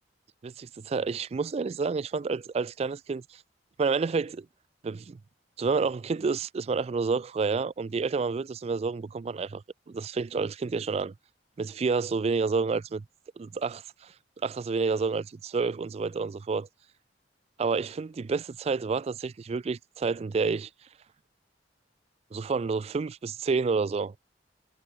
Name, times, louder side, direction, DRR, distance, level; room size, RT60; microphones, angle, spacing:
voice 1, 0.4-3.4 3.8-4.5 4.8-5.2 5.6-9.6 9.9-11.1 11.6-13.0 13.4-14.1 14.4-16.7 17.6-20.7 22.3-24.1, right 4 dB, 35° right, 0.3 m, -29 dB
head